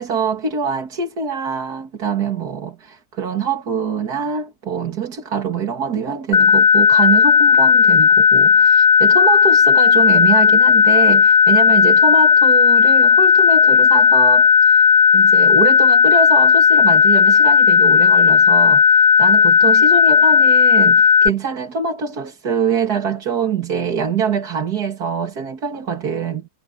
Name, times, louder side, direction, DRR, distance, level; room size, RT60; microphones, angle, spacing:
voice 1, 0.0-14.9 15.1-26.5, right 6 dB, 70° right, 2.8 m, -24 dB
sound 1, 6.3-21.3, left 5 dB, 45° left, 1.1 m, -12 dB
omnidirectional pair, 1.7 m